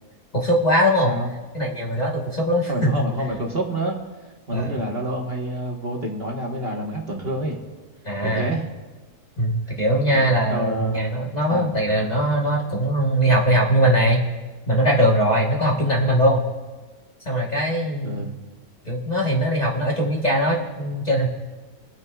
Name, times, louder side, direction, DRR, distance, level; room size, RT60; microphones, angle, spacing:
voice 1, 0.3-1.1 1.5-2.9 4.5-4.8 8.0-8.5 9.4-14.2 14.7-16.4 17.2-18.3 18.9-21.3, equal, 30° left, -3 dB, 1.3 m, -21 dB
voice 2, 2.7-4.0 4.5-7.6 8.2-8.6 10.1-11.1 11.5-11.7 18.0-18.4, right 1 dB, 40° right, -1 dB, 1.4 m, -28 dB
26.0 x 9.5 x 2.3 m, 1.2 s
omnidirectional pair, 1.6 m